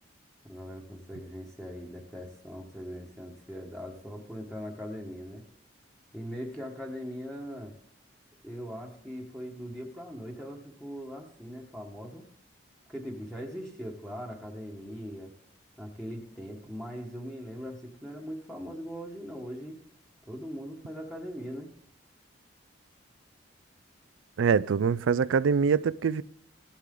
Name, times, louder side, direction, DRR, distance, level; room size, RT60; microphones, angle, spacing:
voice 1, 0.4-5.4 6.1-7.7 8.4-12.2 12.9-15.3 15.8-19.8 20.3-21.7, equal, 5° left, 1.4 m, -40 dB
voice 2, 24.4-26.2, right 6 dB, 90° right, 0.4 m, -24 dB
16.0 x 11.5 x 3.8 m
head